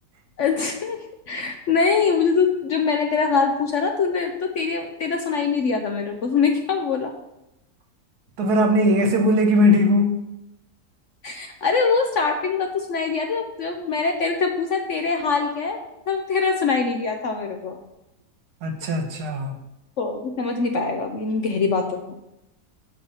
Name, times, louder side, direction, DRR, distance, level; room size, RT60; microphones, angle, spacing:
voice 1, 0.4-1.0 1.3-7.1 11.2-15.8 16.1-17.8 20.0-22.0, left 5 dB, 60° left, 4 dB, 0.8 m, -23 dB
voice 2, 8.4-10.1 18.6-19.5, left 1 dB, 70° right, 4 dB, 1.5 m, -19 dB
6.9 x 5.5 x 5.5 m, 0.88 s
omnidirectional pair, 1.8 m